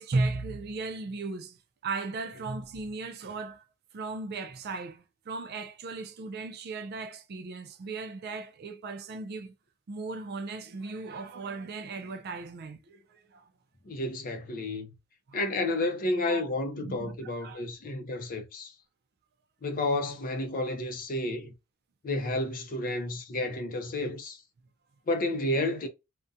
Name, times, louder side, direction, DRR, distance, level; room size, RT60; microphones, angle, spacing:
voice 1, 0.0-3.6 3.9-9.5 9.9-13.5 15.3-15.4 16.3-16.4 16.8-17.6, right 3 dB, 50° right, 0.4 m, -36 dB
voice 2, 13.8-14.9 15.3-18.7 19.6-21.5 22.0-24.4 25.1-25.9, left 2 dB, 40° left, 0.5 m, -31 dB
2.4 x 2.1 x 2.6 m
head